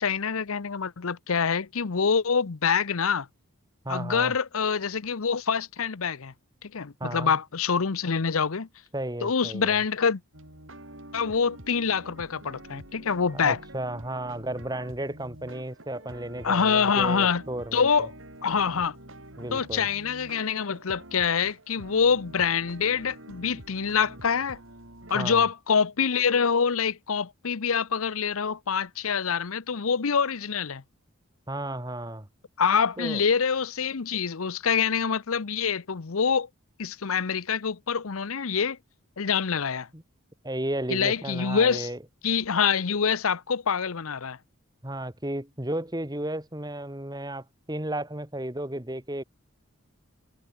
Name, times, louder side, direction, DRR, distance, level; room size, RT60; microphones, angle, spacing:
voice 1, 0.0-3.3 3.9-6.3 6.6-8.7 9.2-10.2 11.1-13.6 16.4-17.4 17.7-18.1 18.4-19.0 19.5-24.6 25.1-30.8 32.6-36.5 36.8-38.8 39.2-39.9 40.9-41.9 42.2-44.4, left 6 dB, 75° left, 0.8 m, -25 dB
voice 2, 3.8-4.3 7.0-7.3 8.9-9.8 13.3-18.1 19.4-19.9 25.1-25.4 31.5-32.3 33.0-33.2 39.9-40.0 40.4-42.0 44.8-49.2, right 1 dB, 20° right, 2.1 m, -33 dB
sound 1, 10.3-25.5, right 1 dB, 65° right, 7.5 m, -47 dB
head